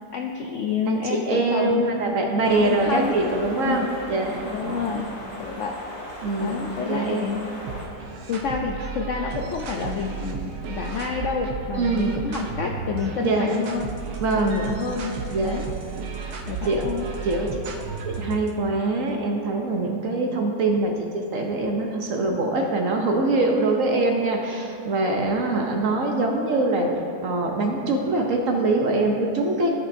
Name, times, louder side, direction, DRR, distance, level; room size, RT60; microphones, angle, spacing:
voice 1, 0.1-1.9 2.3-3.2 3.6-3.9 4.5-5.1 5.4-5.8 6.4-7.4 8.0-13.9 14.3-15.1 15.4-15.7 16.5-17.1, left 5 dB, 75° left, 1 dB, 0.7 m, -29 dB
voice 2, 0.9-3.8 4.1-5.0 6.2-6.6 6.9-7.3 11.7-12.2 13.2-13.5 14.2-14.6 15.3-15.6 16.1-16.4 16.6-16.8 17.2-17.6 18.0-26.9 27.2-29.7, right 2 dB, 60° right, 2 dB, 1.0 m, -23 dB
sound 1, 2.4-7.9, left 1 dB, 55° left, 2.0 m, -38 dB
sound 2, 7.7-18.5, right 5 dB, 85° right, 1.4 m, -34 dB
14.0 x 6.2 x 2.7 m, 2.7 s
omnidirectional pair, 1.8 m